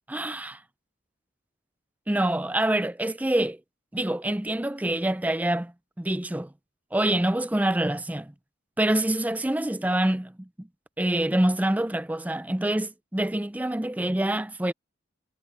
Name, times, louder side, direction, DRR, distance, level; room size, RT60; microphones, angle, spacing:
voice 1, 0.1-0.6 2.1-3.6 3.9-5.7 6.0-6.5 6.9-8.3 8.8-10.7 11.0-14.7, right 1 dB, 10° right, 0.4 m, -26 dB
head